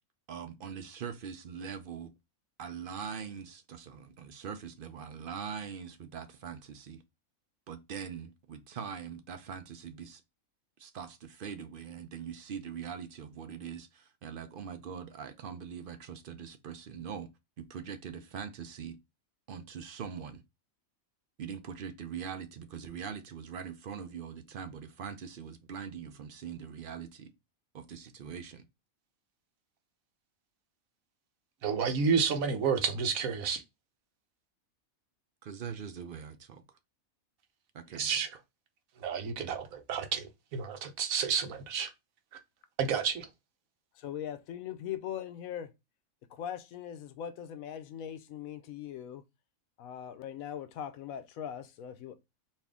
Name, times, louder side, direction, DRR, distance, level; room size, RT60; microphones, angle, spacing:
voice 1, 0.3-2.1 2.6-7.0 7.7-10.2 10.8-17.3 17.6-19.0 19.5-20.4 21.4-27.3 27.7-28.6 35.4-36.6 37.7-38.2, right 7 dB, 55° right, 0.6 m, -42 dB
voice 2, 31.6-33.6 37.9-38.3 39.0-41.9 42.8-43.3, right 6 dB, 75° right, 1.2 m, -30 dB
voice 3, 44.0-45.7 46.3-49.2 49.8-52.2, left 9 dB, 80° left, 1.0 m, -40 dB
4.3 x 2.6 x 3.5 m
omnidirectional pair, 1.4 m